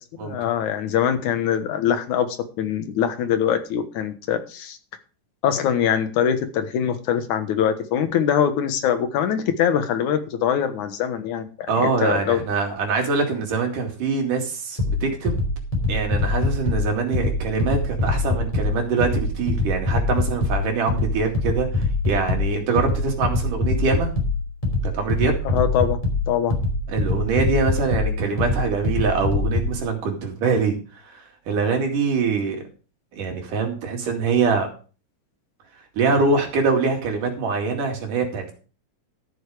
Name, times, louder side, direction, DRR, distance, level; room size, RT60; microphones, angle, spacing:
voice 1, 0.2-4.8 5.4-12.4 25.4-26.0 26.3-26.6, left 8 dB, 70° left, 8 dB, 2.6 m, -23 dB
voice 2, 11.7-15.5 15.9-24.1 24.8-25.4 26.9-30.8 31.0-32.7 33.1-34.7 36.0-38.5, right 4 dB, 75° right, 3 dB, 3.9 m, -24 dB
sound 1, 14.8-29.8, left 2 dB, 10° left, 2.9 m, -24 dB
13.0 x 7.0 x 4.9 m, 0.37 s
omnidirectional pair, 3.7 m